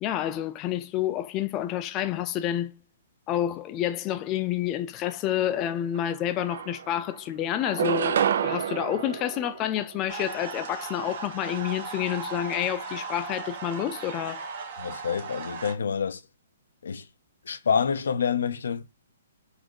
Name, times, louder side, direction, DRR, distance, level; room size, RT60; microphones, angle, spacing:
voice 1, 0.0-2.8 3.3-14.4, left 11 dB, 25° left, 0.3 m, -29 dB
sound 1, 6.0-6.1 6.4-7.2 7.6-10.2, right 8 dB, 65° right, 0.4 m, -29 dB
sound 2, 10.1-15.7, right 5 dB, 50° right, 1.1 m, -37 dB
voice 2, 14.8-16.2 16.8-17.0 17.5-18.9, left 6 dB, 80° left, 0.5 m, -27 dB
4.1 x 2.6 x 4.5 m
hypercardioid pair, 150°, 0 cm